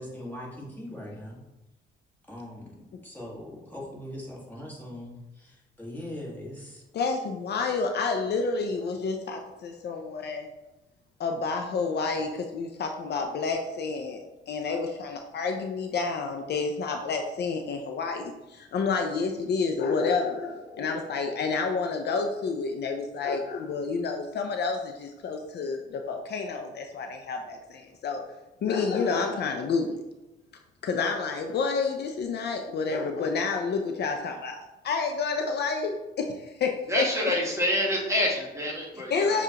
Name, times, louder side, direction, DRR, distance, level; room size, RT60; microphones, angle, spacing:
voice 1, 0.0-1.4 2.3-6.8, left 1 dB, 10° left, -4 dB, 1.4 m, -41 dB
voice 2, 6.9-10.5 11.2-28.2 28.6-30.0 30.8-36.7 37.0-37.1 39.1-39.4, left 4 dB, 55° left, 4 dB, 0.5 m, -29 dB
voice 3, 36.9-39.4, equal, 15° right, -2 dB, 1.2 m, -27 dB
6.3 x 2.4 x 2.8 m, 1.0 s
cardioid pair, 90°, 20 cm